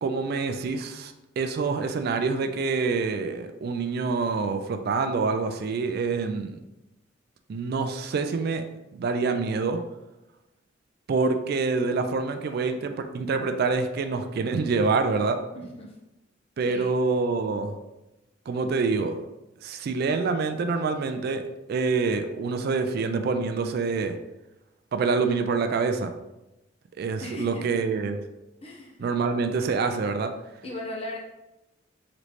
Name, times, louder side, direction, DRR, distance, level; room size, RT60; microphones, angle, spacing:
voice 1, 0.0-6.6 7.5-8.6 8.9-9.8 11.1-15.4 16.6-17.7 18.5-19.2 19.6-21.4 21.7-24.2 24.9-26.1 27.0-28.2 29.0-30.3, right 4 dB, 55° right, 7 dB, 0.3 m, -26 dB
voice 2, 15.5-15.9 16.6-16.9 27.2-27.7 28.6-29.0 30.6-31.2, left 1 dB, 35° left, -2 dB, 0.8 m, -37 dB
3.9 x 3.1 x 3.2 m, 0.97 s
head